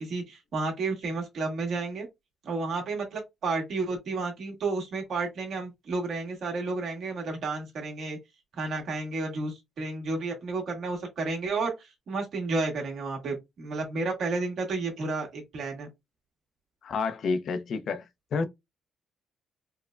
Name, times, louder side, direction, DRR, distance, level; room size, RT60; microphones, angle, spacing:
voice 1, 0.0-2.1 2.4-8.2 8.6-11.7 12.1-15.9, right 3 dB, 65° right, 1.5 m, -31 dB
voice 2, 16.8-18.1 18.3-18.5, left 4 dB, 65° left, 0.6 m, -29 dB
4.5 x 2.1 x 2.4 m
cardioid pair, 90°, 0 cm